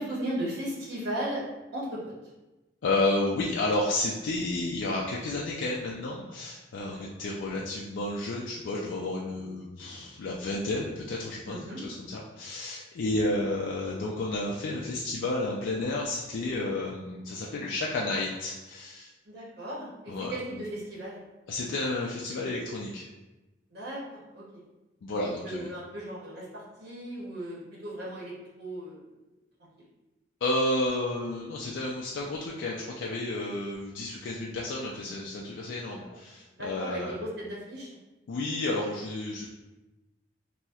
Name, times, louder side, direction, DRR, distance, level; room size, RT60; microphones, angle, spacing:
voice 1, 0.0-1.4 1.7-2.1 6.9-7.1 11.5-11.8 19.2-21.2 23.7-24.4 25.2-29.0 36.0-36.2 36.6-37.9, right 1 dB, 65° right, -5 dB, 0.8 m, -36 dB
voice 2, 2.8-19.1 20.1-20.3 21.5-23.1 25.0-25.7 30.4-37.2 38.3-39.5, left 2 dB, 85° left, -3 dB, 0.4 m, -31 dB
4.1 x 2.0 x 2.3 m, 1.1 s
head